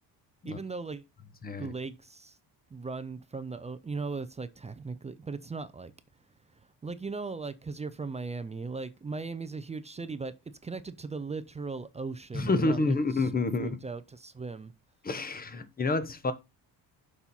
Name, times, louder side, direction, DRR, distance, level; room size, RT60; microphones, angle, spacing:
voice 1, 0.4-1.0 1.5-2.4 2.7-5.9 6.8-10.3 10.6-13.3 13.6-14.7, right 4 dB, 15° right, 0.5 m, -38 dB
voice 2, 12.3-13.7 15.0-16.3, left 3 dB, 20° left, 1.0 m, -28 dB
7.1 x 5.5 x 4.3 m
cardioid pair, 145°, 42 cm